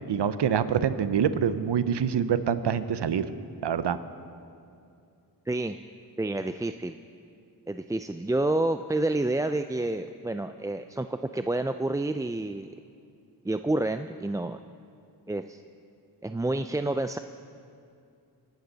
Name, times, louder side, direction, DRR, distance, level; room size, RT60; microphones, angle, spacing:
voice 1, 0.1-3.2 3.6-4.0, right 8 dB, 85° right, 13 dB, 0.7 m, -25 dB
voice 2, 5.5-5.8 6.2-7.0 7.7-12.7 13.4-14.6 15.3-15.6 16.2-17.2, right 2 dB, 10° right, 9 dB, 0.3 m, -29 dB
25.0 x 11.5 x 4.0 m, 2.5 s
cardioid pair, 55°, 40 cm